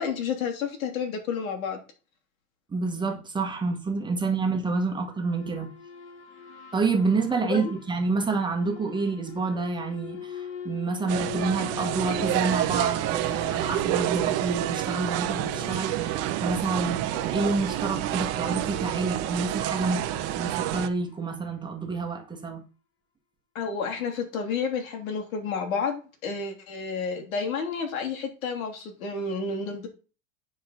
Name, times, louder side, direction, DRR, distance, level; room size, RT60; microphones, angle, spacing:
voice 1, 0.0-1.8 7.4-7.8 23.5-29.9, left 5 dB, 75° left, 3.2 m, -30 dB
voice 2, 2.7-5.7 6.7-20.0 20.4-22.6, right 3 dB, 10° right, 1.5 m, -28 dB
sound 1, 5.1-21.7, left 9 dB, 30° left, 1.3 m, -43 dB
sound 2, 11.1-20.9, right 13 dB, 35° right, 1.0 m, -28 dB
9.7 x 4.8 x 5.6 m
supercardioid pair, 140°, 41 cm